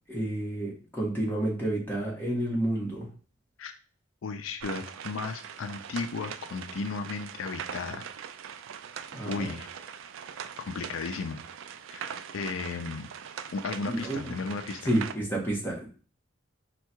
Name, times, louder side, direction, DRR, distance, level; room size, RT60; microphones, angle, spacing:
voice 1, 0.1-3.1 9.1-9.5 13.9-14.3 14.9-15.9, right 1 dB, 10° left, -3 dB, 1.4 m, -30 dB
voice 2, 4.2-8.1 9.2-9.7 10.6-11.4 11.9-13.1 13.5-14.9, left 4 dB, 85° left, 8 dB, 0.4 m, -35 dB
sound 1, 4.6-15.1, right 8 dB, 80° right, 0.4 m, -41 dB
4.5 x 2.3 x 4.4 m, 0.38 s
head